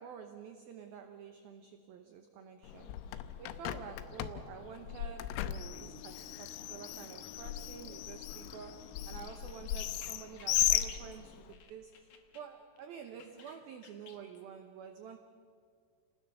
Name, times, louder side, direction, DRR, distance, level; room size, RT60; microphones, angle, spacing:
voice 1, 0.0-15.2, right 7 dB, 85° right, 5 dB, 2.1 m, -49 dB
Bird, 2.6-11.5, left 14 dB, 90° left, 3.5 m, -37 dB
sound 1, 5.7-12.4 12.8-14.4, left 5 dB, 55° left, 2.1 m, -53 dB
29.0 x 19.5 x 6.8 m, 2.1 s
omnidirectional pair, 5.8 m